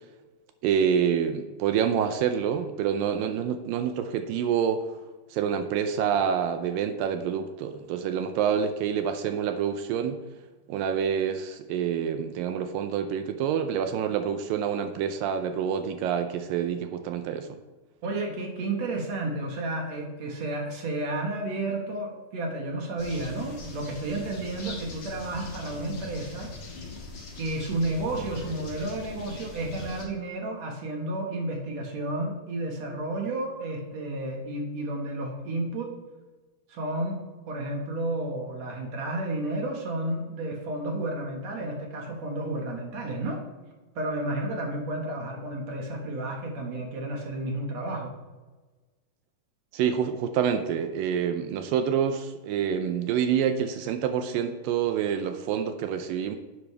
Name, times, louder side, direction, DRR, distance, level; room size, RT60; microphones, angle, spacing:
voice 1, 0.6-4.8 5.3-10.2 10.7-17.6 49.7-56.4, right 8 dB, 85° right, 7 dB, 2.0 m, -27 dB
voice 2, 18.0-26.5 27.4-35.9 36.7-43.4 44.0-48.1, right 2 dB, 55° right, 1 dB, 2.1 m, -31 dB
sound 1, 23.0-30.0, left 3 dB, 45° left, 2.2 m, -41 dB
11.5 x 8.0 x 3.3 m, 1.2 s
omnidirectional pair, 4.7 m